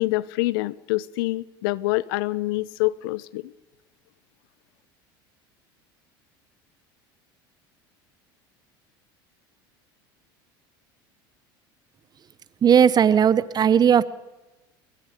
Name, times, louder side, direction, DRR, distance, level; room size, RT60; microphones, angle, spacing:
voice 1, 0.0-3.5, left 19 dB, 75° left, 0.7 m, -26 dB
voice 2, 12.6-14.0, right 8 dB, 35° right, 1.0 m, -17 dB
23.5 x 22.0 x 5.3 m
hypercardioid pair, 90°, 12 cm